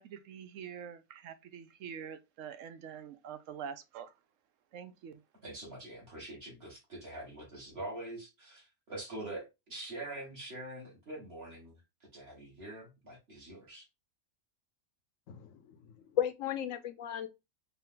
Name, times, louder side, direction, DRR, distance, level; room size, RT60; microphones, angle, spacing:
voice 1, 0.0-4.1 4.7-5.2, right 7 dB, 70° right, 0.9 m, -45 dB
voice 2, 5.4-11.7 12.0-13.8, right 1 dB, 45° right, 1.7 m, -44 dB
voice 3, 15.3-17.3, left 9 dB, 70° left, 1.0 m, -35 dB
4.1 x 2.7 x 3.7 m
omnidirectional pair, 1.5 m